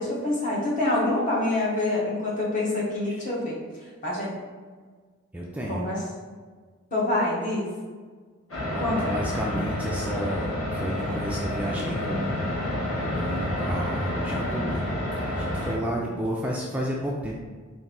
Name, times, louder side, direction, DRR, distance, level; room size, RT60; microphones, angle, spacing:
voice 1, 0.0-3.6 4.0-4.3 5.7-6.0 6.9-7.7 8.8-9.1, left 2 dB, 40° left, -5 dB, 1.1 m, -26 dB
voice 2, 5.3-5.8 8.7-12.6 13.0-14.8 15.2-17.4, equal, 5° right, -3 dB, 0.3 m, -32 dB
sound 1, 8.5-15.8, left 1 dB, 65° left, 1.1 m, -29 dB
4.1 x 2.5 x 3.7 m, 1.5 s
head